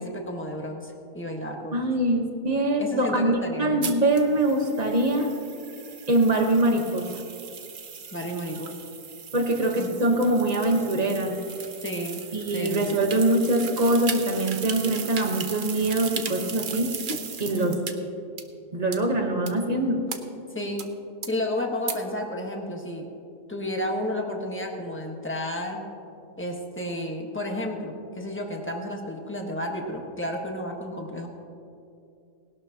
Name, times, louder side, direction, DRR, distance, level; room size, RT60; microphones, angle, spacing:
voice 1, 0.0-1.8 2.8-4.0 8.1-8.7 9.7-10.0 11.8-12.3 12.5-13.0 17.5-17.9 20.5-20.9 21.3-23.1 23.5-25.8 26.4-31.3, left 1 dB, 10° left, 1 dB, 1.2 m, -32 dB
voice 2, 1.7-5.3 6.1-7.1 9.3-11.4 12.3-16.9 17.4-17.8 18.7-20.0, right 1 dB, 30° right, 3 dB, 1.1 m, -23 dB
sound 1, 3.8-17.9 18.4-18.5 18.9-19.0 19.5-19.6 20.1-20.2 20.8-20.9 21.2-21.3 21.9-22.0, right 6 dB, 45° right, 0.7 m, -37 dB
19.0 x 12.0 x 2.9 m, 2.6 s
omnidirectional pair, 1.6 m